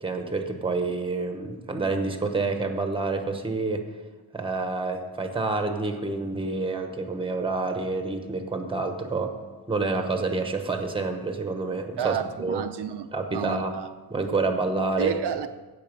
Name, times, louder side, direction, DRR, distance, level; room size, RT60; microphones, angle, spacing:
voice 1, 0.0-3.8 4.3-9.4 9.7-12.6 13.1-13.8 14.1-15.1, right 3 dB, 10° right, 6 dB, 1.0 m, -28 dB
voice 2, 12.0-13.9 15.0-15.5, right 9 dB, 75° right, 7 dB, 0.7 m, -30 dB
16.0 x 6.8 x 5.3 m, 1.2 s
wide cardioid pair, 170°, 42 cm